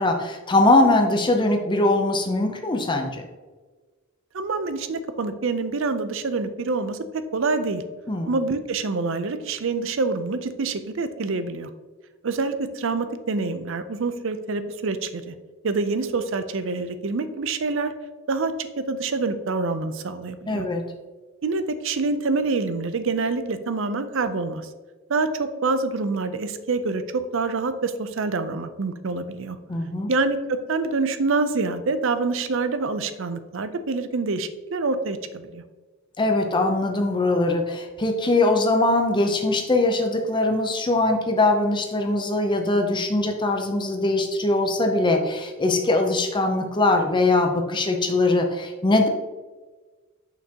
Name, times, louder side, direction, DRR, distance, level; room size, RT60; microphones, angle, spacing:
voice 1, 0.0-3.2 8.1-8.3 20.5-20.8 29.7-30.1 36.2-49.1, left 2 dB, 20° left, 4 dB, 0.6 m, -21 dB
voice 2, 4.3-7.0 7.3-7.8 8.3-11.7 12.2-15.3 15.6-17.9 18.3-18.5 18.9-20.7 21.4-24.7 25.1-27.0 27.3-29.6 30.1-35.6, right 3 dB, 60° right, 11 dB, 0.5 m, -26 dB
6.7 x 5.9 x 2.9 m, 1.3 s
head